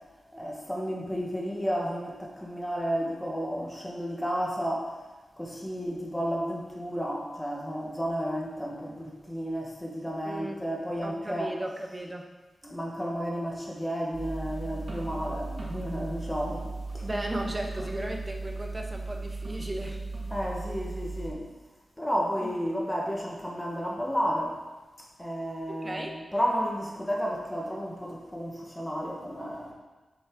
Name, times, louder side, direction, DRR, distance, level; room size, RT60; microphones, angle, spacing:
voice 1, 0.3-4.9 5.4-11.5 12.6-17.1 20.3-21.5 22.0-24.6 25.2-29.7, equal, 10° left, -2 dB, 1.2 m, -32 dB
voice 2, 10.2-10.6 11.0-12.3 17.0-20.0 22.4-22.6 25.7-26.1, right 1 dB, 20° right, 2 dB, 0.7 m, -35 dB
sound 1, 14.1-21.3, right 3 dB, 60° right, 1.6 m, -36 dB
7.2 x 5.2 x 3.6 m, 1.2 s
wide cardioid pair, 140°, 0 cm